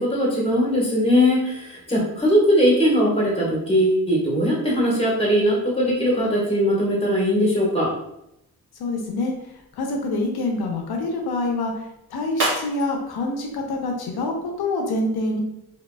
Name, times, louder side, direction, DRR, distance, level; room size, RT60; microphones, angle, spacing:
voice 1, 0.0-7.9, equal, 15° left, -4 dB, 1.3 m, -20 dB
voice 2, 8.8-9.3 9.8-15.4, left 2 dB, 85° left, 2 dB, 0.7 m, -26 dB
sound 1, 9.2-14.7, right 2 dB, 55° right, 1.1 m, -35 dB
2.9 x 2.7 x 2.2 m, 0.82 s
cardioid pair, 65°, 37 cm